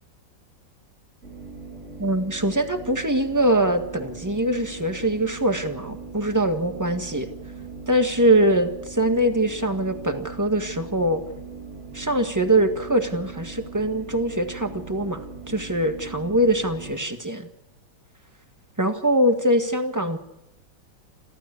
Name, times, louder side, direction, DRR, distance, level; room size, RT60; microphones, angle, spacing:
sound 1, 1.2-17.0, right 4 dB, 35° right, 4.6 m, -40 dB
voice 1, 2.0-7.3 7.9-11.2 11.9-17.5 18.8-20.2, right 1 dB, 10° right, 6 dB, 1.6 m, -23 dB
28.5 x 13.0 x 8.4 m, 0.86 s
omnidirectional pair, 2.1 m